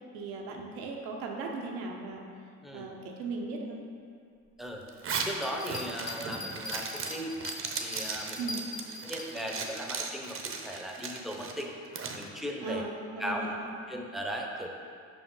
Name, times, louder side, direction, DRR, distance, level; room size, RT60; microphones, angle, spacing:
voice 1, 0.1-2.2 2.7-3.8 8.4-8.6 12.6-13.7, right 3 dB, 90° right, 1 dB, 0.8 m, -37 dB
Zipper (clothing), 4.9-12.2, right 5 dB, 40° right, 0.7 m, -37 dB
voice 2, 5.2-7.3 7.8-8.5 9.0-11.7 12.1-12.8 13.2-13.5 13.9-14.7, equal, ahead, 0 dB, 0.7 m, -37 dB
sound 1, 5.4-9.8, left 2 dB, 25° left, 0.9 m, -41 dB
5.3 x 4.9 x 3.8 m, 2.3 s
supercardioid pair, 80°, 33 cm